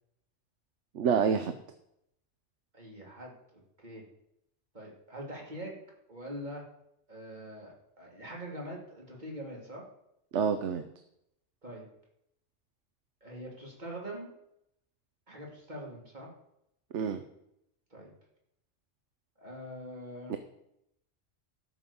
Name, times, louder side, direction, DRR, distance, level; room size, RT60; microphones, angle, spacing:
voice 1, 0.9-1.6 10.3-10.8 16.9-17.2 20.3-20.4, right 6 dB, 75° right, 9 dB, 1.1 m, -27 dB
voice 2, 2.7-3.3 3.8-4.0 4.7-5.8 6.1-6.7 7.1-9.8 11.6-11.8 13.2-14.3 15.3-16.3 17.9-18.1 19.4-20.4, equal, 40° right, -2 dB, 2.9 m, -43 dB
13.0 x 6.3 x 6.9 m, 0.79 s
omnidirectional pair, 1.2 m